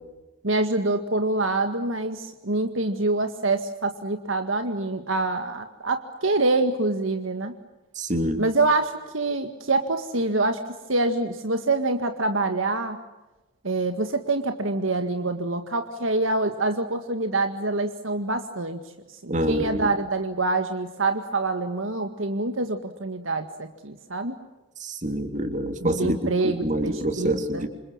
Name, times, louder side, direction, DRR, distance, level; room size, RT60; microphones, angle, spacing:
voice 1, 0.4-7.5 8.4-10.6 10.9-13.0 13.6-18.8 19.2-24.4 25.8-27.7, right 2 dB, 80° right, 7 dB, 1.9 m, -26 dB
voice 2, 8.0-8.4 19.3-19.9 24.8-26.2 26.4-27.7, right 1 dB, 35° right, 7 dB, 3.2 m, -26 dB
28.0 x 27.5 x 7.4 m, 1.1 s
head